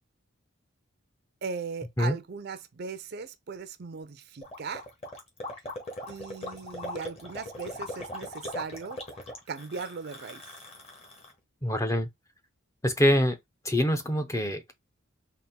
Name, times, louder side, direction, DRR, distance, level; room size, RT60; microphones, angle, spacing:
voice 1, 1.4-4.9 6.1-9.0 9.5-10.6, right 5 dB, 50° right, 0.5 m, -38 dB
Gurgling, 4.4-11.3, left 1 dB, 30° left, 1.2 m, -40 dB
voice 2, 11.6-12.1 12.8-13.4 13.6-14.7, left 1 dB, 15° left, 0.6 m, -25 dB
4.1 x 2.5 x 3.6 m
head